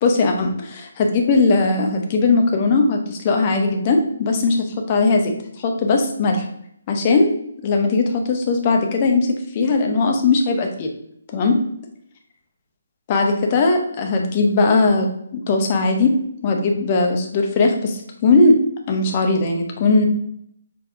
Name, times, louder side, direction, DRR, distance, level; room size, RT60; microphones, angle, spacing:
voice 1, 0.0-4.6 4.9-6.5 6.9-7.4 7.6-10.9 11.3-11.6 13.1-15.1 15.3-16.2 16.4-18.6 18.9-20.1, left 3 dB, 30° left, 2 dB, 0.7 m, -19 dB
6.1 x 2.2 x 3.6 m, 0.72 s
figure-of-eight pair, 140°, 0 cm